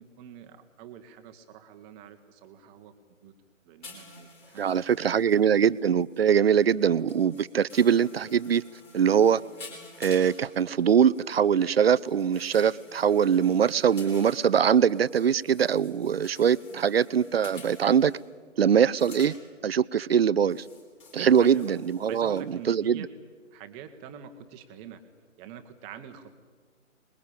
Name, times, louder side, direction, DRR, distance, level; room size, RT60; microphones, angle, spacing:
voice 1, 0.0-2.9 3.2-3.3 3.6-5.6 16.7-16.9 21.2-21.8 22.1-23.1 23.5-25.0 25.4-26.3, right 8 dB, 15° right, 1.3 m, -46 dB
sound 1, 3.8-18.3 18.8-19.4 20.5-22.5 22.9-23.0, left 3 dB, 15° left, 4.2 m, -51 dB
voice 2, 4.6-8.6 8.9-9.4 10.0-18.1 18.6-19.3 19.6-20.6 21.1-23.1, right 8 dB, 50° right, 0.7 m, -22 dB
26.0 x 21.0 x 8.7 m
figure-of-eight pair, 145°, 40 cm